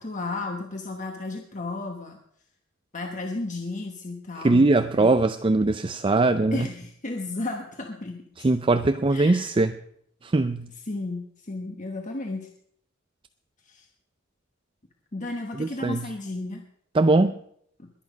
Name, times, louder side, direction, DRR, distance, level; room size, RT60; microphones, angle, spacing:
voice 1, 0.0-2.2 2.9-5.1 6.5-8.5 9.1-9.5 10.8-12.5 13.6-13.9 15.1-16.6 17.8-17.9, left 2 dB, 35° left, 2 dB, 1.3 m, -33 dB
voice 2, 4.4-6.7 8.4-9.7 10.2-10.7 15.6-16.1 16.9-17.4, right 2 dB, 25° right, 9 dB, 0.4 m, -21 dB
21.5 x 8.7 x 5.2 m, 0.68 s
head